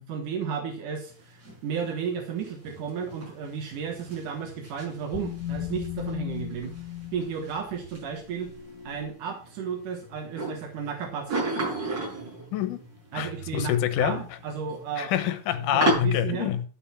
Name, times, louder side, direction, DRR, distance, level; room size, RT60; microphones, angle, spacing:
voice 1, 0.0-6.8 7.1-8.5 8.8-11.5 13.1-15.1 15.5-16.5, right 6 dB, 80° right, 2.9 m, -33 dB
sound 1, 1.1-16.0, right 2 dB, 55° right, 8.0 m, -36 dB
sound 2, 3.7-9.1, left 11 dB, 30° left, 1.7 m, -38 dB
voice 2, 12.5-12.8 13.1-14.2 15.0-16.7, left 10 dB, 85° left, 2.6 m, -26 dB
12.0 x 5.8 x 5.7 m
omnidirectional pair, 3.6 m